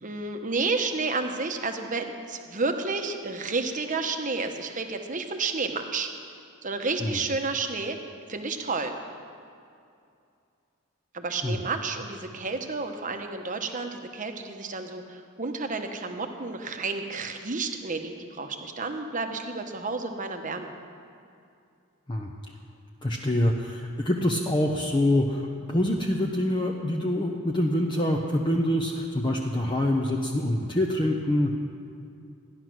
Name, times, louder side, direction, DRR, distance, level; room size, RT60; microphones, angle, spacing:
voice 1, 0.0-6.1 6.6-8.0 8.3-8.9 11.1-20.7, right 3 dB, 40° right, 5 dB, 1.0 m, -31 dB
voice 2, 23.0-31.6, left 1 dB, 20° left, 0 dB, 0.8 m, -25 dB
14.5 x 10.5 x 6.2 m, 2.5 s
head